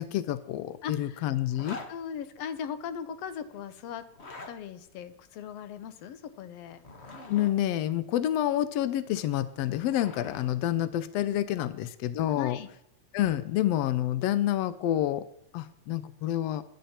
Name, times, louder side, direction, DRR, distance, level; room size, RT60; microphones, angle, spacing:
voice 1, 0.0-1.8 7.3-12.6 13.1-15.3 15.5-16.6, left 12 dB, 90° left, 14 dB, 1.4 m, -28 dB
voice 2, 0.8-1.3 1.9-4.0 4.5-6.8 11.6-11.7 12.3-12.7, left 7 dB, 70° left, 11 dB, 1.6 m, -39 dB
Zipper (clothing), 1.5-1.9 4.0-4.5 6.7-7.5 9.4-10.5, left 2 dB, 50° left, 0.7 m, -44 dB
21.0 x 10.5 x 4.4 m, 0.77 s
omnidirectional pair, 3.7 m